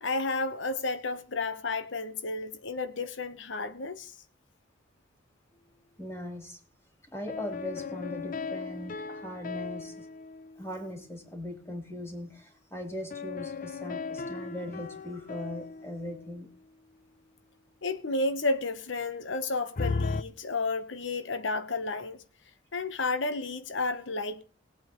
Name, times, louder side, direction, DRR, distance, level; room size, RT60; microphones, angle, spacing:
voice 1, 0.0-4.2 17.8-22.2 22.7-24.4, left 3 dB, 85° left, 1.0 m, -32 dB
voice 2, 6.0-6.6 7.1-10.1 10.6-16.5, left 1 dB, 15° left, 3.3 m, -39 dB
sound 1, 7.3-11.1 13.1-16.6 19.8-20.2, left 4 dB, 45° left, 0.6 m, -37 dB
20.5 x 8.5 x 3.1 m
head